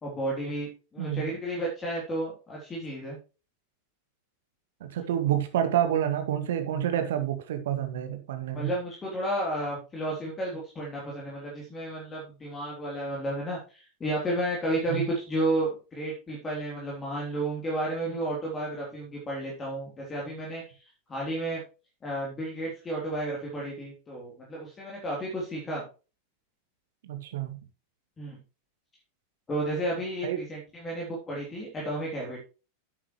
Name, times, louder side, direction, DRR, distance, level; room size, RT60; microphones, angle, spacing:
voice 1, 0.0-3.2 8.5-20.8 21.1-21.6 22.0-25.8 28.2-28.4 29.5-32.4, right 1 dB, 20° left, -3 dB, 3.3 m, -32 dB
voice 2, 1.0-1.3 4.8-8.7 14.9-15.0 27.0-27.6 30.2-30.4, right 10 dB, 55° right, 8 dB, 1.9 m, -28 dB
11.0 x 8.6 x 3.1 m, 0.32 s
figure-of-eight pair, 90°, 0 cm